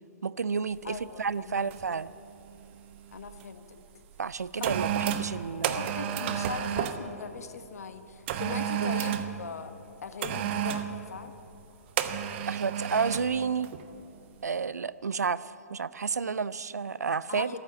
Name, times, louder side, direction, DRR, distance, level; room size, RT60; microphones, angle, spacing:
voice 1, 0.2-2.1 4.2-5.9 8.8-8.9 12.5-13.7 14.4-17.5, right 5 dB, 80° right, 18 dB, 0.5 m, -31 dB
voice 2, 0.8-1.7 3.1-3.8 4.6-4.7 5.0-5.3 5.7-9.7 10.0-11.4 17.3-17.6, left 5 dB, 70° left, 9 dB, 1.2 m, -40 dB
sound 1, 0.9-1.0 1.7-2.0 2.2-3.4 4.1-7.0 8.3-9.3 10.2-10.9 12.0-13.3 13.6-13.9, right 10 dB, 45° right, 1.0 m, -31 dB
14.0 x 13.5 x 7.5 m, 2.8 s
figure-of-eight pair, 125°, 9 cm